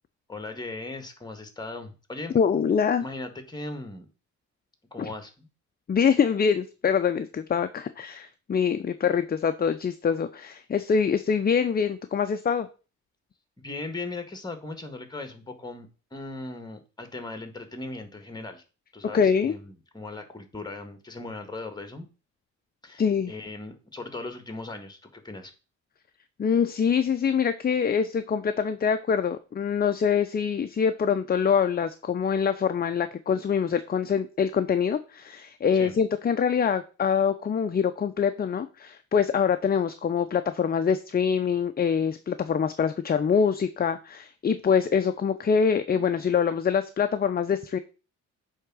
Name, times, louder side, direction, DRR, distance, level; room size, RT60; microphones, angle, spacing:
voice 1, 0.3-2.3 3.0-4.1 4.9-5.5 13.6-18.6 18.9-22.1 22.8-25.5 35.7-36.0, left 2 dB, 15° left, 8 dB, 1.9 m, -38 dB
voice 2, 2.3-3.0 5.0-5.1 5.9-12.7 19.0-19.5 23.0-23.3 26.4-47.8, left 6 dB, 30° left, 9 dB, 0.6 m, -24 dB
8.0 x 3.7 x 6.1 m, 0.33 s
cardioid pair, 90°, 30 cm